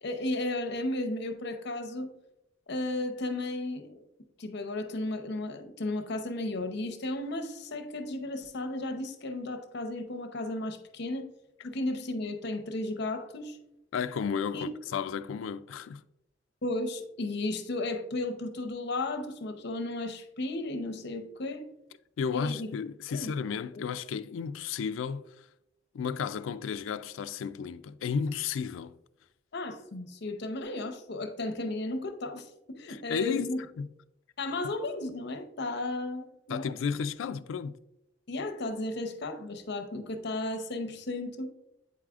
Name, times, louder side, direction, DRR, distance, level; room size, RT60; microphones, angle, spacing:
voice 1, 0.0-2.1 2.7-4.0 4.4-11.3 11.6-13.6 14.5-14.6 16.6-21.6 22.3-22.7 23.1-23.3 23.7-23.8 29.5-33.6 34.4-36.7 38.3-41.5, left 2 dB, 60° left, 0.7 m, -34 dB
voice 2, 13.9-16.0 22.2-25.4 25.9-28.9 32.9-33.5 33.8-33.9 36.5-37.7, left 6 dB, 85° left, 0.3 m, -33 dB
8.2 x 4.7 x 2.4 m
head